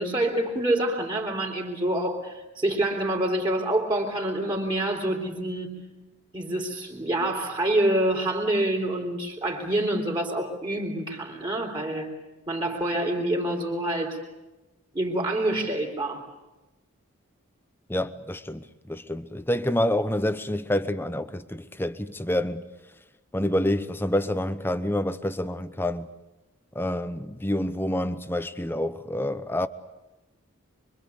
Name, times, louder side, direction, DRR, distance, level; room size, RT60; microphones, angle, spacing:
voice 1, 0.0-5.8 6.3-12.1 12.5-14.2 14.9-16.3, right 1 dB, 20° right, 3.5 m, -27 dB
voice 2, 17.9-22.7 23.3-26.1 26.7-29.7, left 1 dB, 10° left, 0.9 m, -27 dB
25.0 x 25.0 x 8.3 m
head